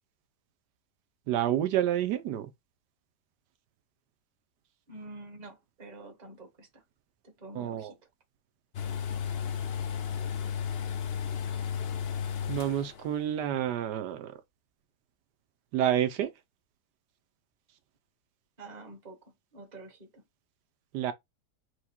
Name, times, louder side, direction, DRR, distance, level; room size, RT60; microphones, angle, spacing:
voice 1, 1.3-2.5 7.5-7.9 12.5-14.4 15.7-16.3 20.9-21.1, right 11 dB, 85° right, 1.2 m, -29 dB
voice 2, 4.9-6.8 7.2-8.0 18.6-20.2, right 2 dB, 25° right, 1.3 m, -48 dB
sound 1, 8.7-13.2 13.5-13.6, left 7 dB, 80° left, 0.5 m, -33 dB
4.7 x 2.2 x 4.2 m
omnidirectional pair, 1.8 m